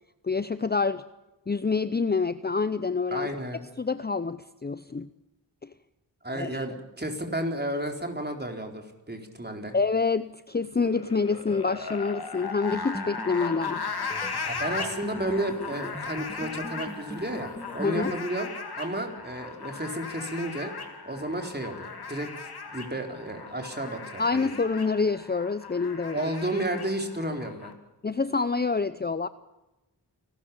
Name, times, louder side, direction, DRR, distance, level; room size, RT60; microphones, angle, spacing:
voice 1, 0.2-1.0 1.5-3.3 3.8-5.1 5.6-5.7 6.3-6.6 9.7-13.8 17.8-18.1 24.2-26.3 28.0-29.3, left 4 dB, 25° left, 13 dB, 0.7 m, -27 dB
voice 2, 3.1-3.6 6.2-9.8 14.5-20.7 21.0-24.5 26.1-27.7, right 1 dB, 25° right, 4 dB, 4.1 m, -32 dB
sound 1, 10.7-27.7, left 4 dB, 60° left, 2.5 m, -37 dB
sound 2, 12.7-18.3, left 1 dB, 5° left, 2.3 m, -41 dB
29.5 x 13.0 x 7.2 m, 1.0 s
cardioid pair, 55°, 42 cm